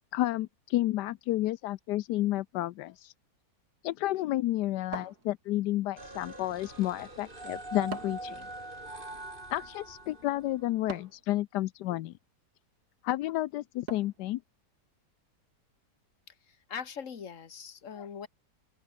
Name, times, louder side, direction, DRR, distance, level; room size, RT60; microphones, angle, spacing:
voice 1, 0.1-3.1 3.8-8.4 9.5-12.1 13.0-14.4 18.0-18.1, left 15 dB, 85° left, 1.2 m, -31 dB
sound 1, 4.9-5.8 7.9-8.4 10.9-11.3 13.9-14.3, right 4 dB, 70° right, 3.3 m, -42 dB
sound 2, 6.0-10.8, right 2 dB, 30° right, 4.8 m, -43 dB
voice 2, 16.3-18.3, left 7 dB, 50° left, 1.9 m, -41 dB
open air
omnidirectional pair, 1.7 m